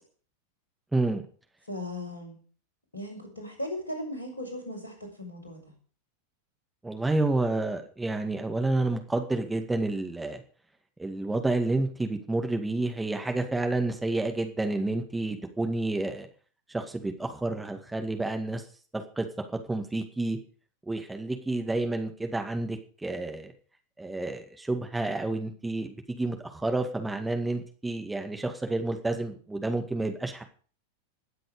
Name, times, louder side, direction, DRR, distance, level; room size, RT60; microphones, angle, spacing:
voice 1, 0.9-1.3 6.8-10.4 11.0-16.3 16.7-18.6 18.9-19.3 19.7-20.4 20.9-23.5 24.0-30.4, right 2 dB, 5° right, 4 dB, 2.0 m, -29 dB
voice 2, 1.7-2.4 2.9-5.6, left 1 dB, 75° left, 3 dB, 5.8 m, -37 dB
21.5 x 7.7 x 5.0 m, 0.41 s
figure-of-eight pair, 90°, 0 cm